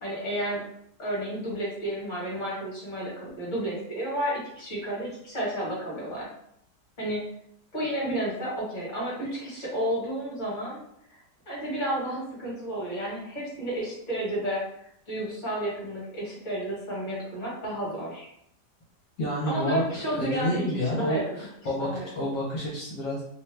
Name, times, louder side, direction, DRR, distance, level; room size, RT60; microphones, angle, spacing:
voice 1, 0.0-0.6 1.0-6.3 7.0-7.2 7.7-10.8 11.1-11.2 11.5-14.6 15.1-18.3 19.5-21.5 21.8-22.1, right 1 dB, 30° left, -6 dB, 1.2 m, -31 dB
voice 2, 19.2-23.2, equal, 65° left, -6 dB, 1.2 m, -29 dB
2.9 x 2.2 x 3.1 m, 0.73 s
omnidirectional pair, 1.9 m